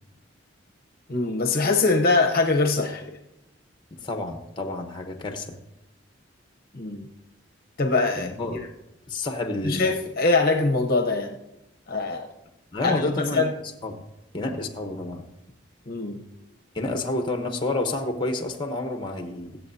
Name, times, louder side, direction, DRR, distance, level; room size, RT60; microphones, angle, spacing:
voice 1, 1.1-3.2 6.7-7.1 7.8-8.6 9.6-11.4 11.9-12.3 12.8-13.5 15.9-16.3, left 3 dB, 50° left, 4 dB, 0.8 m, -23 dB
voice 2, 4.0-5.6 8.2-8.6 9.1-9.9 12.7-13.5 13.8-13.9 14.3-15.2 16.7-19.6, left 2 dB, 25° left, 5 dB, 0.9 m, -29 dB
22.0 x 7.8 x 2.7 m, 0.92 s
head